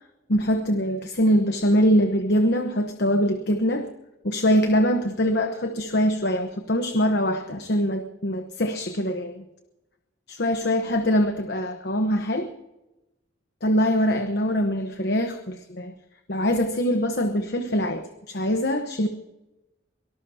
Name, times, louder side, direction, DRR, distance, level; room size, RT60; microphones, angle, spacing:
voice 1, 0.3-3.9 4.2-9.4 10.3-12.5 13.6-15.9 16.3-19.1, equal, 55° left, 6 dB, 1.1 m, -23 dB
24.0 x 19.0 x 2.8 m, 0.98 s
head